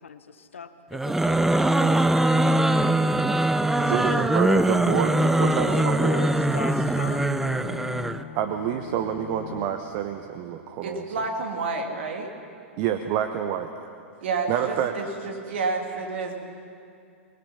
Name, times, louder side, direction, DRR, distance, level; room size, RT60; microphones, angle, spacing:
voice 1, 0.0-2.8 3.8-4.6 5.6-7.4, left 6 dB, 70° left, 10 dB, 1.1 m, -39 dB
sound 1, 0.9-8.2, right 1 dB, 5° right, 0.5 m, -22 dB
voice 2, 3.9-6.4 8.3-11.0 12.8-13.9 14.5-14.9 15.5-15.6, right 10 dB, 40° right, 7 dB, 1.0 m, -28 dB
Bowed string instrument, 4.0-10.0, left 9 dB, 55° left, 1.3 m, -40 dB
voice 3, 10.8-12.3 14.2-16.3, right 3 dB, 60° right, 2 dB, 2.8 m, -29 dB
23.5 x 20.5 x 5.8 m, 2.4 s
figure-of-eight pair, 100°, 7 cm